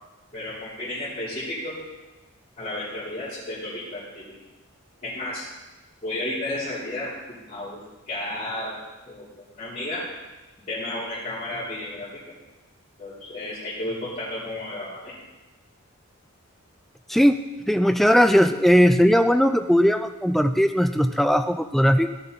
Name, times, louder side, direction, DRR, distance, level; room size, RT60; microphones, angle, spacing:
voice 1, 0.3-1.8 2.6-4.4 5.0-5.5 6.0-8.8 9.1-9.3 9.6-10.1 10.7-12.1 13.0-15.1, left 1 dB, 30° left, -13 dB, 3.7 m, -32 dB
voice 2, 17.7-22.2, equal, ahead, 9 dB, 0.4 m, -18 dB
16.5 x 7.0 x 4.1 m, 1.1 s
head